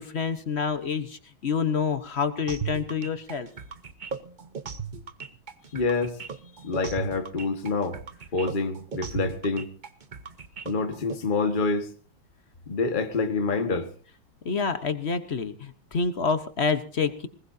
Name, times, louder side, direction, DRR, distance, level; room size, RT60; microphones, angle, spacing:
voice 1, 0.0-3.5 14.4-17.3, left 5 dB, 40° left, 1.0 m, -28 dB
sound 1, 2.5-11.2, right 6 dB, 55° right, 0.5 m, -37 dB
voice 2, 5.7-6.2 6.6-8.0 8.3-9.7 10.6-11.9 12.7-13.9, left 3 dB, 25° left, 1.5 m, -27 dB
20.0 x 20.0 x 2.7 m
omnidirectional pair, 2.2 m